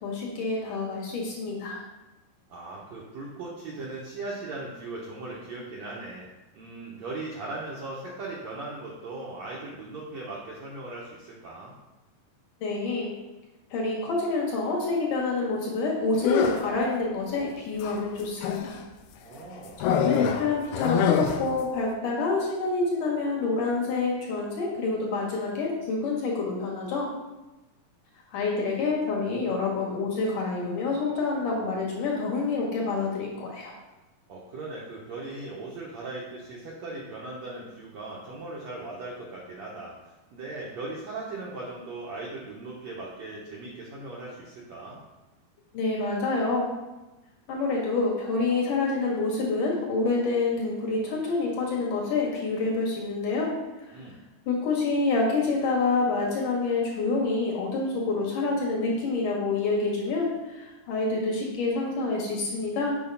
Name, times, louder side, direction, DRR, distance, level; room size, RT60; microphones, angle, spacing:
voice 1, 0.0-1.8 12.6-13.1 13.7-18.8 19.8-27.1 28.3-33.7 45.7-46.7 47.5-53.5 54.5-62.9, left 3 dB, 60° left, -4 dB, 3.1 m, -27 dB
voice 2, 2.5-6.3 6.5-11.7 19.2-19.8 34.3-39.9 40.3-45.0 53.9-54.2, right 2 dB, 70° right, -4 dB, 1.7 m, -38 dB
sound 1, 16.2-16.8 17.8-18.8 19.8-21.6, left 7 dB, 85° left, 2.6 m, -26 dB
7.3 x 4.9 x 5.6 m, 1.1 s
omnidirectional pair, 4.4 m